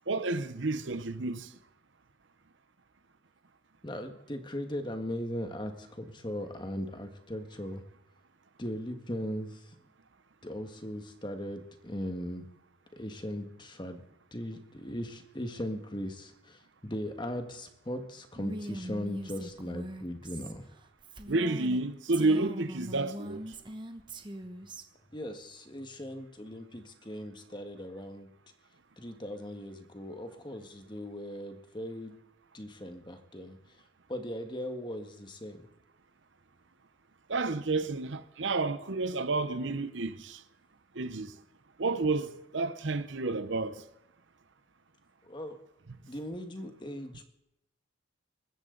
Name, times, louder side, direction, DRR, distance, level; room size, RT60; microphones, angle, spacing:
voice 1, 0.1-1.5 21.3-23.4 37.3-40.4 40.9-41.3 41.8-43.8, right 3 dB, 70° right, 0.9 m, -30 dB
voice 2, 3.8-7.8 8.6-9.7 10.4-12.5 12.9-14.0 14.3-20.7 25.1-28.3 29.0-32.2 32.5-33.6 34.1-35.7 45.2-45.6 46.1-47.2, equal, 25° left, 1.6 m, -38 dB
Female speech woman speaking, 18.3-21.8 22.1-24.8, right 1 dB, 25° right, 1.2 m, -41 dB
23.5 x 14.0 x 4.0 m
head